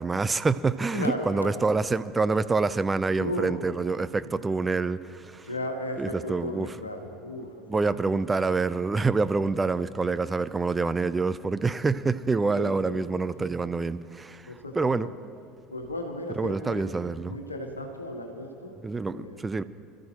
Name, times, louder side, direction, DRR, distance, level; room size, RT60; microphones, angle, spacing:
voice 1, 0.0-5.5 6.0-6.7 7.7-15.1 16.4-17.4 18.8-19.6, right 4 dB, 20° right, 14 dB, 0.6 m, -27 dB
voice 2, 0.9-1.8 3.2-3.6 4.2-4.4 5.0-5.1 5.4-7.8 12.5-13.1 14.4-15.1 15.7-18.7 19.1-19.4, left 1 dB, 90° left, 3 dB, 1.5 m, -35 dB
26.5 x 13.5 x 2.9 m, 2.5 s
figure-of-eight pair, 70°, 0 cm